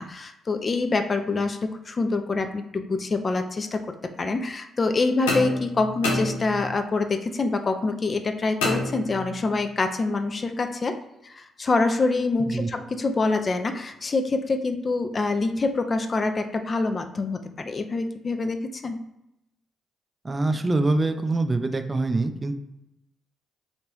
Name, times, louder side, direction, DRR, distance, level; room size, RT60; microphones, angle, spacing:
voice 1, 0.0-11.0 11.2-19.0, left 3 dB, 40° left, 7 dB, 0.4 m, -26 dB
sound 1, 5.3-6.9 8.6-9.6, left 2 dB, 85° left, 0.6 m, -29 dB
voice 2, 12.4-12.7 20.2-22.6, right 2 dB, 30° right, 7 dB, 0.4 m, -24 dB
3.1 x 2.4 x 3.1 m, 0.87 s
hypercardioid pair, 45°, 0 cm